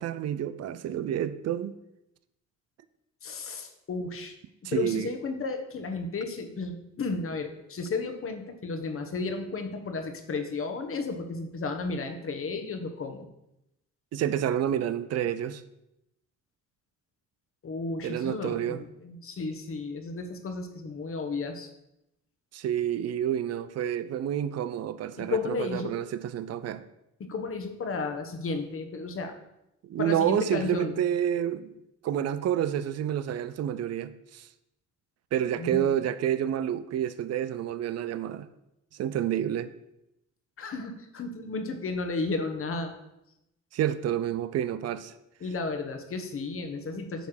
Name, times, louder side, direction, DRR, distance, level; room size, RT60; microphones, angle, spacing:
voice 1, 0.0-1.7 4.6-5.1 14.1-15.6 18.0-18.8 22.5-26.8 29.8-31.7 32.0-34.5 35.3-38.5 38.9-39.7 43.7-45.1, right 10 dB, 55° right, 0.6 m, -29 dB
voice 2, 3.2-4.4 4.7-13.3 17.6-21.7 25.2-25.9 27.2-29.3 30.0-31.0 35.6-35.9 40.6-42.9 45.4-47.3, left 3 dB, 45° left, 1.3 m, -33 dB
9.2 x 3.5 x 6.5 m
cardioid pair, 90°, 30 cm